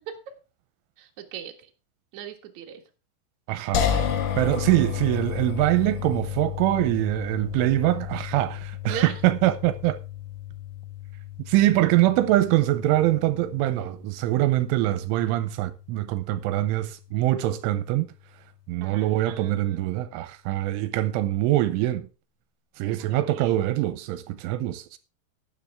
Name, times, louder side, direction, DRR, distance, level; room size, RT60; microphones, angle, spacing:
voice 1, 1.0-1.7 2.1-2.8 8.9-9.2 18.8-20.0 22.9-23.6, right 8 dB, 65° right, 1.8 m, -38 dB
voice 2, 3.5-4.0 4.4-10.0 11.5-18.1 18.7-22.1 22.8-25.0, right 15 dB, 80° right, 3.1 m, -24 dB
sound 1, 3.7-16.8, left 9 dB, 70° left, 3.5 m, -33 dB
12.0 x 10.5 x 3.5 m
omnidirectional pair, 5.8 m